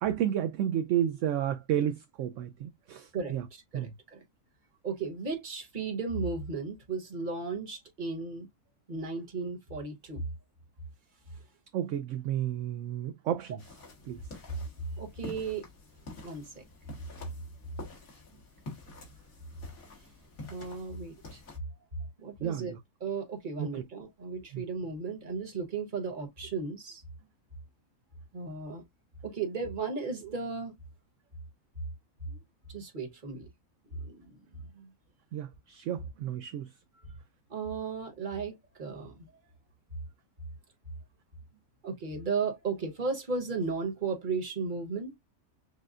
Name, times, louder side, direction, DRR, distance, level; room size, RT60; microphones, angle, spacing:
voice 1, 0.0-3.5 3.7-3.9 11.7-13.6 14.0-14.2 22.4-22.8 23.6-23.7 24.5-24.6 35.3-36.7, right 10 dB, 70° right, 0.8 m, -31 dB
voice 2, 3.1-4.2 4.8-8.5 8.9-10.2 15.0-15.6 16.2-16.6 20.5-21.4 22.2-22.7 23.0-27.0 28.3-28.8 29.2-30.7 32.2-32.4 32.7-33.5 33.9-34.4 34.7-34.9 37.5-39.2 41.8-45.2, right 4 dB, 35° right, 1.3 m, -35 dB
sound 1, 13.6-21.6, left 2 dB, 65° left, 2.1 m, -48 dB
6.6 x 2.2 x 2.5 m
omnidirectional pair, 1.6 m